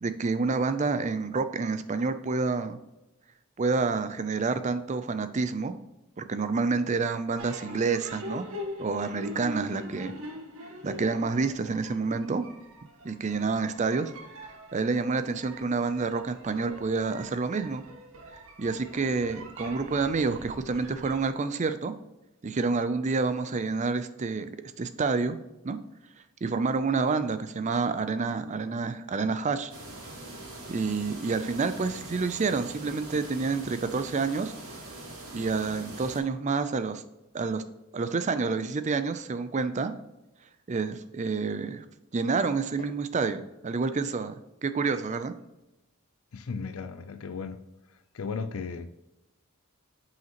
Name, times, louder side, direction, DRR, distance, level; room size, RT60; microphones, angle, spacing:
voice 1, 0.0-2.8 3.6-5.7 6.2-8.5 8.8-10.1 10.8-12.4 13.0-14.1 14.7-17.8 18.6-21.9 22.4-24.5 24.8-25.4 25.6-25.8 26.4-29.7 30.7-34.5 35.3-37.0 37.3-37.6 37.9-40.0 40.7-41.8 42.1-45.3, right 4 dB, 30° right, 0.4 m, -28 dB
sound 1, 7.4-21.2, left 1 dB, 65° right, 1.6 m, -44 dB
sound 2, 29.7-36.2, right 2 dB, 85° right, 2.5 m, -43 dB
voice 2, 46.3-47.6 47.9-48.9, left 5 dB, 70° left, 0.5 m, -36 dB
7.7 x 5.7 x 3.0 m
head